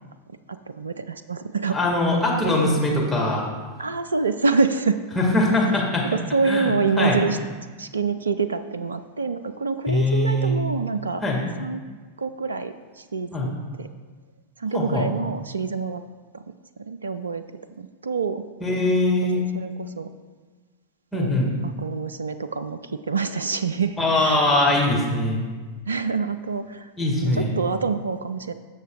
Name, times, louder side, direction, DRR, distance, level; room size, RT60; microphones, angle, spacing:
voice 1, 0.5-1.8 2.1-2.7 3.8-5.0 6.0-7.4 7.8-11.2 11.6-11.8 12.2-13.5 13.8-13.9 14.6-16.0 16.3-16.4 16.9-17.4 17.8-18.4 19.2-20.1 21.1-24.4 24.7-24.9 25.9-26.9 27.2-28.5, right 4 dB, 75° right, 12 dB, 0.3 m, -26 dB
voice 2, 1.7-3.5 5.2-6.1 6.4-7.2 9.9-10.6 11.2-11.4 13.3-13.5 14.7-15.1 18.6-19.5 21.1-21.5 24.0-25.5 27.0-27.6, left 1 dB, 5° left, -4 dB, 2.0 m, -22 dB
15.5 x 6.6 x 2.4 m, 1.4 s
figure-of-eight pair, 90°, 0 cm